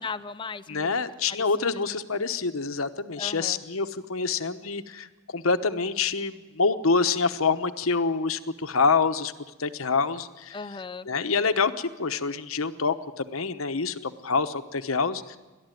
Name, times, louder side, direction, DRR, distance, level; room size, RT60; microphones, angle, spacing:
voice 1, 0.0-1.0 1.3-1.4 3.2-3.6 10.5-11.1, left 4 dB, 25° left, 13 dB, 0.6 m, -37 dB
voice 2, 0.7-9.3 9.6-10.6 11.1-15.4, left 4 dB, 90° left, 10 dB, 1.1 m, -26 dB
29.5 x 13.0 x 9.2 m, 1.2 s
head